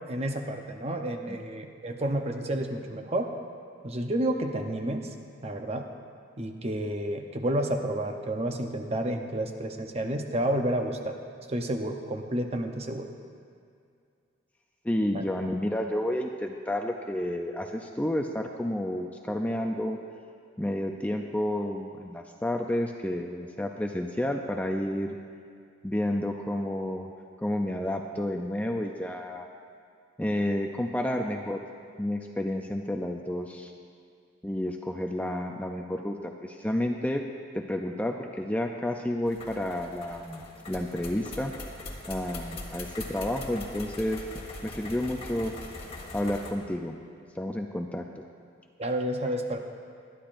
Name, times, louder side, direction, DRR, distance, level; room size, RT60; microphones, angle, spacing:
voice 1, 0.1-3.3 3.8-5.1 5.4-5.9 6.4-11.2 11.5-13.1 15.1-15.2 48.8-49.6, right 1 dB, 30° right, 4 dB, 0.7 m, -30 dB
voice 2, 14.8-20.0 20.6-25.1 25.8-27.1 27.4-29.5 30.2-31.6 32.0-33.7 34.4-37.2 37.5-40.4 40.7-41.5 42.1-44.2 44.6-45.5 46.1-47.0 47.4-48.0, left 1 dB, 10° left, 3 dB, 0.4 m, -30 dB
sound 1, 39.3-46.5, left 2 dB, 30° left, 1.3 m, -41 dB
20.5 x 11.5 x 2.6 m, 2.3 s
head